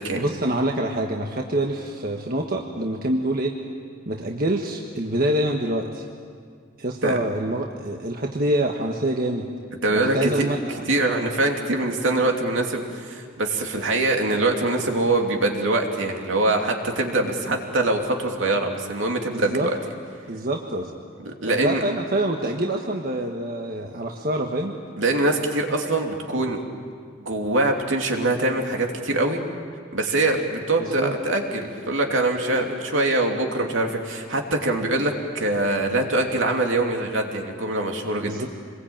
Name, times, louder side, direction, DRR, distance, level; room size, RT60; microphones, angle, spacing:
voice 1, 0.1-3.6 4.1-6.0 6.8-9.5 9.9-10.8 17.2-17.3 19.3-19.7 20.3-20.9 21.5-24.7 30.8-31.1 38.2-38.5, right 1 dB, 45° right, 1 dB, 1.4 m, -26 dB
voice 2, 9.8-10.5 10.9-19.7 21.2-21.8 25.0-26.6 27.2-29.4 29.9-38.4, right 2 dB, 75° right, 2 dB, 2.9 m, -23 dB
26.5 x 21.5 x 8.9 m, 2.1 s
head